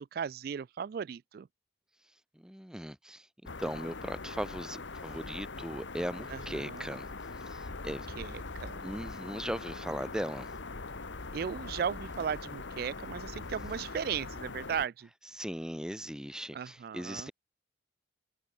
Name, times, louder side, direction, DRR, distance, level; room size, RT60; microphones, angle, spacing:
voice 1, 0.0-1.5 6.3-6.9 7.8-8.8 11.3-15.1 16.5-17.3, right 7 dB, 50° right, 0.3 m, -36 dB
voice 2, 2.4-3.3 3.6-7.1 7.5-8.1 8.8-10.5 15.3-17.3, equal, 5° right, 0.7 m, -38 dB
sound 1, 3.5-14.9, left 3 dB, 75° left, 1.4 m, -42 dB
head